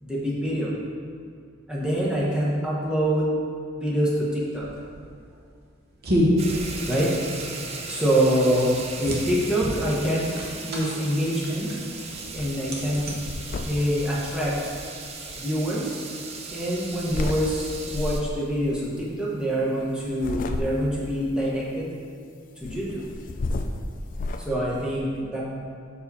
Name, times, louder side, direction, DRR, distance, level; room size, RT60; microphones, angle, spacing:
voice 1, 0.0-0.7 1.7-3.3 3.8-4.7 6.9-7.1 7.9-8.7 9.0-10.3 10.6-11.7 12.3-13.1 13.6-14.6 15.4-16.0 16.5-21.9 22.6-23.0 24.4-25.4, equal, 5° right, -7 dB, 1.0 m, -25 dB
sound 1, 4.7-14.1, equal, 50° right, 0.9 m, -30 dB
sound 2, 6.4-18.2, right 4 dB, 30° right, 0.5 m, -38 dB
sound 3, 12.2-12.5 12.9-15.4 16.5-17.4 17.9-18.4 20.0-21.1 22.6-24.5, left 2 dB, 40° left, 0.3 m, -32 dB
5.8 x 4.8 x 4.1 m, 2.2 s
head